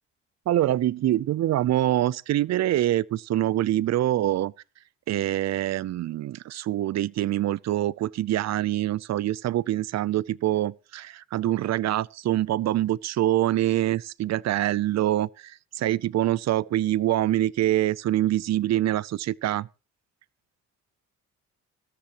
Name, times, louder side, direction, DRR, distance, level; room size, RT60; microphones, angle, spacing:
voice 1, 0.5-4.5 5.1-19.7, right 13 dB, 60° right, 0.6 m, -25 dB
18.5 x 13.5 x 3.0 m
cardioid pair, 90°, 30 cm